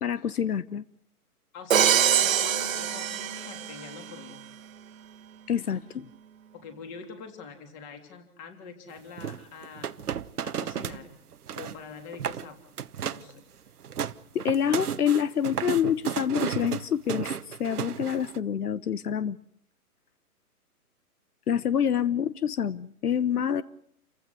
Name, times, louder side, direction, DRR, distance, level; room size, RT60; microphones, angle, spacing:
voice 1, 0.0-0.8 5.5-6.1 14.3-19.4 21.5-23.6, left 8 dB, 80° left, 1.2 m, -27 dB
voice 2, 1.5-4.4 6.5-9.9 10.4-11.1 11.5-12.6 13.1-13.5, left 5 dB, 20° left, 3.5 m, -44 dB
Crash cymbal, 1.7-3.9, right 9 dB, 60° right, 1.6 m, -24 dB
sound 1, 9.2-11.0 11.3-11.8 12.1-12.5 12.8-13.3 13.7-18.4, right 8 dB, 80° right, 1.3 m, -33 dB
29.5 x 16.0 x 7.8 m
hypercardioid pair, 160°, 45 cm